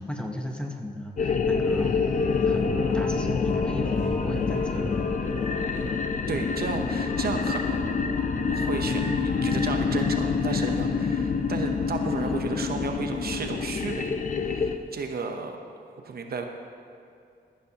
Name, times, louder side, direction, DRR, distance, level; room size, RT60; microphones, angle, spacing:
voice 1, 0.0-2.0 2.4-5.4, equal, 5° left, 2 dB, 0.9 m, -35 dB
sound 1, 1.2-14.8, left 5 dB, 45° left, 0.6 m, -26 dB
sound 2, 1.6-13.6, right 2 dB, 85° right, 1.7 m, -47 dB
Wind instrument woodwind instrument, 2.1-10.7, left 3 dB, 85° left, 2.1 m, -42 dB
voice 2, 6.3-7.9 8.5-15.6 16.0-16.5, right 4 dB, 60° right, 4 dB, 0.8 m, -33 dB
13.5 x 12.0 x 2.9 m, 2.4 s
wide cardioid pair, 125°, 18 cm